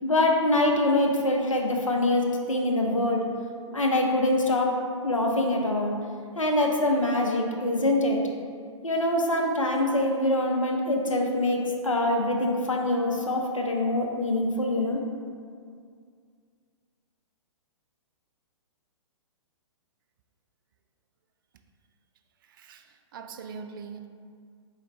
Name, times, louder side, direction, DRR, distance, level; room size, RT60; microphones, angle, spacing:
voice 1, 0.0-3.2 3.7-4.8 5.0-5.9 6.4-8.2 8.8-15.0, left 1 dB, 85° left, 1 dB, 0.7 m, -24 dB
voice 2, 22.5-22.8 23.1-24.1, right 6 dB, 45° right, 7 dB, 0.4 m, -41 dB
4.1 x 4.0 x 3.2 m, 2.1 s
figure-of-eight pair, 120°, 16 cm